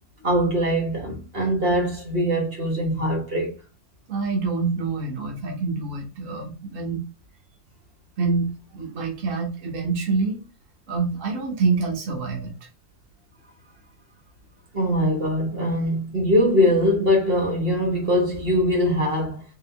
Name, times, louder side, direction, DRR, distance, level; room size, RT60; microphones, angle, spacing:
voice 1, 0.2-3.5 14.7-19.4, equal, 45° right, 1.3 m, -22 dB
voice 2, 4.1-7.0 8.2-10.4 10.9-12.7, right 4 dB, 60° right, 1.5 m, -26 dB
3.8 x 3.1 x 3.3 m
omnidirectional pair, 1.5 m